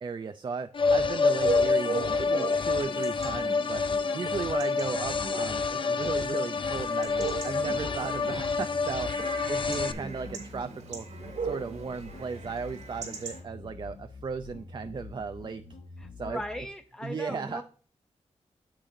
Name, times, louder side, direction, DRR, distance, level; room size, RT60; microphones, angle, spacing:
voice 1, 0.0-3.8 4.1-7.1 7.4-9.1 9.5-11.1 11.4-15.6 16.2-16.4 17.0-17.6, right 5 dB, 40° right, 9 dB, 0.4 m, -35 dB
sound 1, 0.7-9.9, left 4 dB, 45° left, 0.5 m, -28 dB
Chatter / Bark / Livestock farm animals working animals, 1.2-13.4, right 4 dB, 85° right, 2.8 m, -39 dB
sound 2, 7.0-16.6, left 4 dB, 75° left, 0.9 m, -46 dB
voice 2, 16.0-17.6, left 1 dB, 5° left, 6 dB, 0.6 m, -38 dB
8.7 x 7.4 x 2.6 m, 0.42 s
cardioid pair, 75°, 12 cm